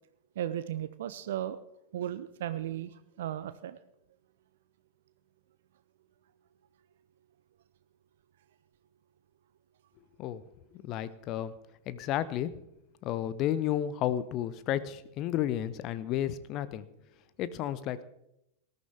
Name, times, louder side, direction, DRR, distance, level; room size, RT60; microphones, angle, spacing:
voice 1, 0.4-1.6 1.9-2.9 3.2-3.8, right 11 dB, 60° right, 14 dB, 0.6 m, -35 dB
voice 2, 10.7-11.5 11.9-12.6 13.0-16.8 17.4-18.0, left 11 dB, 40° left, 16 dB, 0.8 m, -32 dB
19.0 x 13.5 x 3.5 m, 0.81 s
figure-of-eight pair, 90°, 0 cm